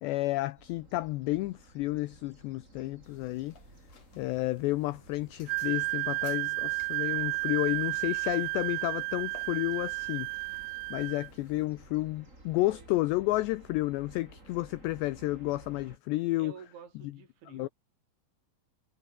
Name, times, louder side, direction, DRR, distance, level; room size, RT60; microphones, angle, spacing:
voice 1, 0.0-3.5 4.2-10.3 10.9-16.5 17.5-17.7, left 18 dB, 80° left, 2.5 m, -31 dB
sound 1, 0.6-16.0, right 2 dB, 15° right, 6.2 m, -55 dB
sound 2, 3.0-11.7, left 6 dB, 35° left, 3.7 m, -59 dB
Wind instrument woodwind instrument, 5.5-11.3, right 25 dB, 85° right, 3.0 m, -32 dB
voice 2, 12.6-12.9 16.4-17.7, right 7 dB, 65° right, 6.4 m, -50 dB
omnidirectional pair, 5.8 m